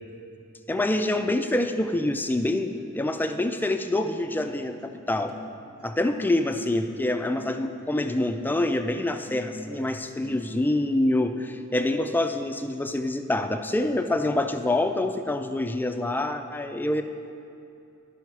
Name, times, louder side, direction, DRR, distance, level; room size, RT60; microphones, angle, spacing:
voice 1, 0.7-5.4 5.8-17.0, left 1 dB, 10° left, 7 dB, 0.3 m, -26 dB
Acoustic guitar, 2.6-10.5, left 1 dB, 90° right, 1.1 m, -47 dB
12.0 x 5.6 x 4.6 m, 2.7 s
head